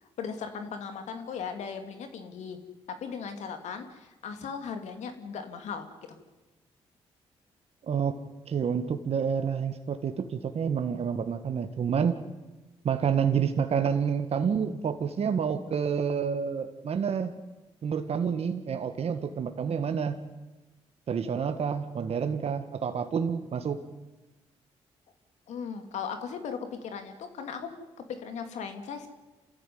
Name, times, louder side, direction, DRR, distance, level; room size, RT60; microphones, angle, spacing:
voice 1, 0.0-2.6 2.9-6.2 25.5-27.7 28.1-29.1, left 6 dB, 80° left, 7 dB, 2.9 m, -37 dB
voice 2, 7.8-8.2 8.5-12.2 12.8-17.3 17.8-20.2 21.1-23.8, right 7 dB, 60° right, 7 dB, 1.8 m, -28 dB
28.0 x 14.5 x 9.6 m, 1.1 s
supercardioid pair, 60°, 12 cm